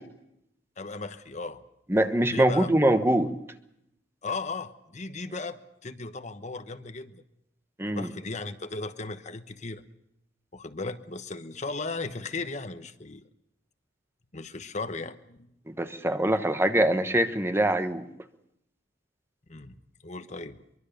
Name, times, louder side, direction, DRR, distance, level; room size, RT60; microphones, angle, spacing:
voice 1, 0.8-1.6 2.3-2.7 4.2-7.2 7.9-9.8 10.5-13.2 14.3-15.5 19.5-19.8 20.0-20.6, left 3 dB, 40° left, 10 dB, 1.1 m, -36 dB
voice 2, 1.9-3.3 7.8-8.1 15.7-18.0, right 1 dB, 15° right, 9 dB, 1.2 m, -23 dB
23.5 x 23.0 x 6.7 m, 0.78 s
head